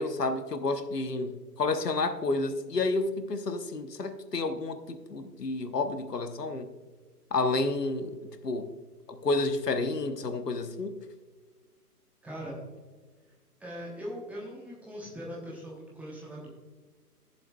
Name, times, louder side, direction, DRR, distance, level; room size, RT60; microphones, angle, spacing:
voice 1, 0.0-6.7 7.3-8.2 8.4-8.7 9.1-11.0, left 3 dB, 80° left, 9 dB, 1.1 m, -30 dB
voice 2, 12.2-12.6 13.6-16.5, equal, 5° right, -4 dB, 0.9 m, -40 dB
14.5 x 7.3 x 2.3 m, 1.4 s
figure-of-eight pair, 130°, 47 cm